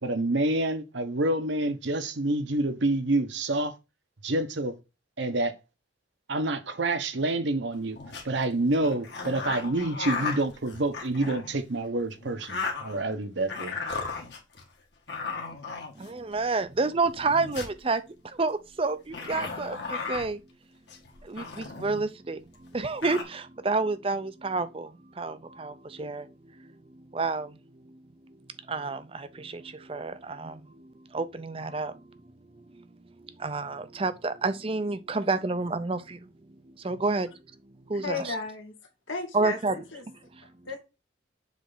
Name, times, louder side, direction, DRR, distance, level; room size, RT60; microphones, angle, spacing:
voice 1, 0.0-3.7 4.2-4.8 5.2-5.5 6.3-8.0 8.2-13.8, right 2 dB, 70° right, 1.0 m, -27 dB
sound 1, 7.7-8.2 8.8-11.6 12.2-13.1 13.5-14.6 15.1-16.3 17.0-17.8 19.1-20.3 20.9-22.0 22.5-22.6 22.7-23.2, left 4 dB, 60° left, 1.7 m, -35 dB
voice 2, 16.0-20.4 21.2-28.4 28.7-32.2 32.5-32.9 33.2-37.3 37.7-38.3 39.3-39.7 40.1-40.2, right 3 dB, 30° right, 0.5 m, -30 dB
voice 3, 38.0-38.7 39.1-40.0 40.7-40.8, left 3 dB, 85° left, 2.0 m, -34 dB
7.3 x 3.4 x 4.0 m
head